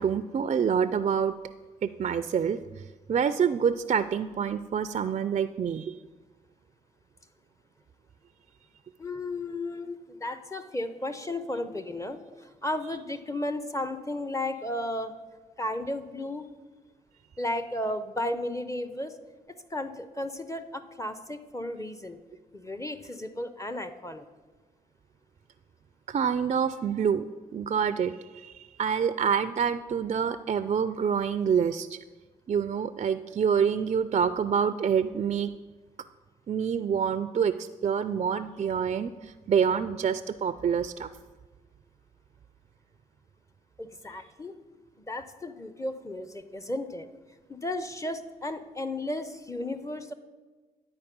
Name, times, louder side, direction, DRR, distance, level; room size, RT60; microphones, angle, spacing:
voice 1, 0.0-1.3 1.8-2.6 3.1-5.9 26.1-27.3 27.5-32.0 32.5-35.5 36.5-41.1, right 7 dB, 40° right, 12 dB, 0.3 m, -27 dB
voice 2, 9.0-15.1 15.6-16.5 17.4-19.2 19.7-22.2 22.5-24.2 43.8-44.6 45.1-47.1 47.5-50.1, left 1 dB, 15° left, 10 dB, 0.6 m, -34 dB
9.7 x 4.2 x 5.2 m, 1.3 s
supercardioid pair, 45°, 18 cm